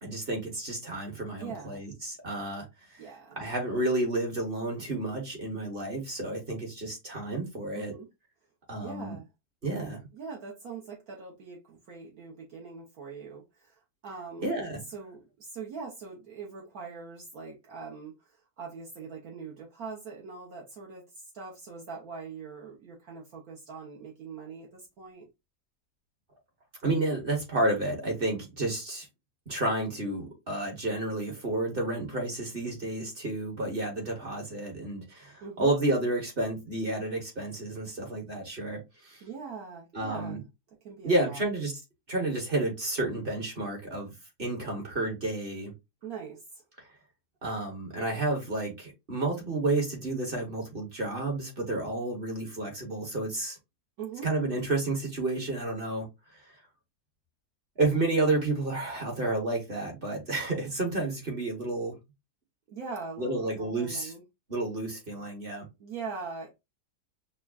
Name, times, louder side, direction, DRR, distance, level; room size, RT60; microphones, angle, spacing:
voice 1, 0.0-2.6 3.4-7.9 8.7-9.1 9.6-10.0 14.4-14.8 26.8-29.1 29.5-39.2 39.9-40.4 41.0-41.7 42.1-44.1 44.4-45.7 47.4-53.6 54.2-56.1 57.8-62.0 63.2-64.1 64.5-65.6, right 2 dB, 40° right, 1.2 m, -31 dB
voice 2, 1.3-1.8 3.0-3.4 7.7-8.1 8.8-9.3 10.1-14.5 14.9-25.3 35.4-35.7 39.2-40.4 40.8-41.4 46.0-46.6 54.0-54.3 62.7-64.2 65.8-66.5, right 5 dB, 65° right, 1.4 m, -42 dB
5.9 x 2.2 x 2.3 m
omnidirectional pair, 1.7 m